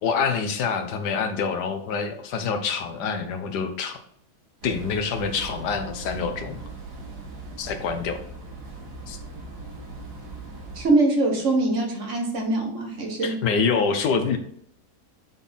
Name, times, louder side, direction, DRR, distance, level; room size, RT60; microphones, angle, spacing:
voice 1, 0.0-4.0 4.6-6.6 7.6-8.2 9.1-9.2 13.2-14.4, left 5 dB, 90° left, 7 dB, 1.5 m, -26 dB
sound 1, 4.6-10.9, right 3 dB, 90° right, 2.1 m, -39 dB
voice 2, 10.7-13.4, right 2 dB, 50° right, 1 dB, 1.6 m, -23 dB
7.5 x 4.2 x 3.5 m, 0.65 s
omnidirectional pair, 1.7 m